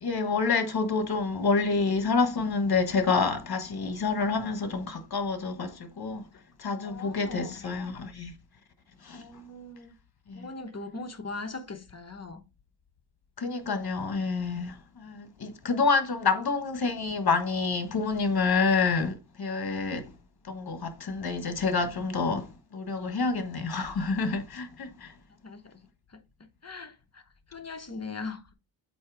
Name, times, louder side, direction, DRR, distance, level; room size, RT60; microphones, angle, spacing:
voice 1, 0.0-6.3 6.6-8.3 9.0-9.2 10.3-10.5 13.4-20.1 20.5-25.1, left 4 dB, 55° left, 1.3 m, -28 dB
voice 2, 6.8-7.6 9.1-9.9 10.3-12.4 25.3-26.2 26.6-27.2 27.5-28.5, left 3 dB, 35° left, 1.0 m, -40 dB
8.3 x 2.8 x 4.8 m
wide cardioid pair, 100°, 44 cm